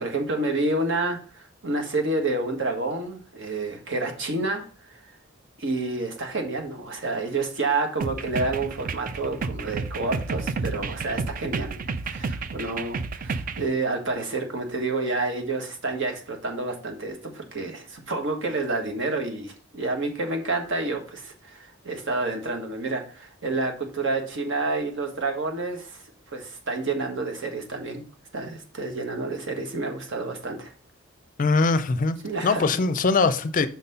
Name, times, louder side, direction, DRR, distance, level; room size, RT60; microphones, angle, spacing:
voice 1, 0.0-5.0 5.6-26.0 26.3-28.0 28.3-30.7 32.2-32.6, right 2 dB, 65° right, 1.4 m, -29 dB
sound 1, 8.0-13.7, right 4 dB, 45° right, 0.4 m, -31 dB
voice 2, 31.4-32.2 32.4-33.7, left 4 dB, 40° left, 0.5 m, -21 dB
6.1 x 4.1 x 5.5 m
head